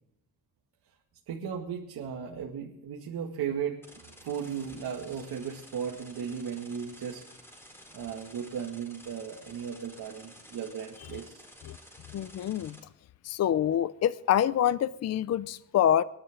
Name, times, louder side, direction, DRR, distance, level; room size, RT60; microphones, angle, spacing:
voice 1, 1.3-7.2 7.9-11.4, right 7 dB, 80° right, -1 dB, 2.3 m, -36 dB
sound 1, 3.8-12.8, equal, 5° left, 4.3 m, -52 dB
voice 2, 12.1-12.8 13.2-16.0, left 10 dB, 45° left, 16 dB, 0.5 m, -26 dB
26.5 x 11.5 x 3.8 m, 0.76 s
cardioid pair, 155°, 37 cm